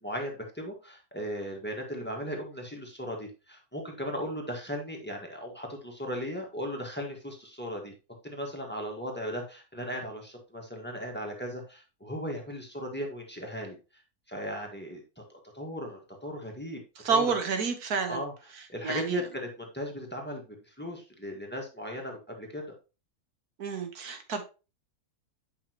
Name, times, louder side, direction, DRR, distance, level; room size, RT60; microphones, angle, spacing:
voice 1, 0.0-7.9 8.2-13.8 14.3-15.2 15.5-16.8 17.1-17.3 18.1-22.6, equal, 5° left, 1.6 m, -37 dB
voice 2, 17.0-18.2 18.8-19.3 23.6-24.4, right 5 dB, 80° right, 1.7 m, -29 dB
8.6 x 5.5 x 3.0 m
omnidirectional pair, 1.6 m